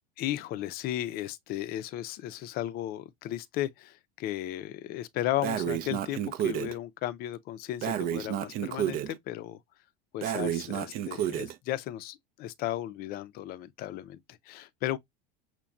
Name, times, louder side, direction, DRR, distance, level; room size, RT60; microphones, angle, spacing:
voice 1, 0.2-9.6 10.1-15.0, left 13 dB, 50° left, 0.5 m, -35 dB
Breathing, 5.4-6.7 7.8-9.1 10.2-11.5, right 11 dB, 45° right, 0.5 m, -31 dB
5.8 x 2.2 x 2.4 m
hypercardioid pair, 95°, 21 cm